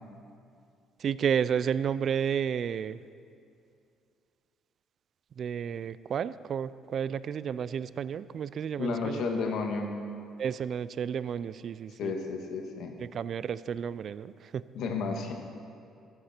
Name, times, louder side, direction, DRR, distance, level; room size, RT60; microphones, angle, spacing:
voice 1, 1.0-3.0 5.4-9.2 10.4-12.1 13.0-14.6, right 8 dB, 40° right, 16 dB, 0.3 m, -31 dB
voice 2, 8.8-9.9 12.0-12.9 14.7-15.3, left 4 dB, 60° left, 3 dB, 1.6 m, -32 dB
15.5 x 13.0 x 4.4 m, 2.4 s
cardioid pair, 160°, 0 cm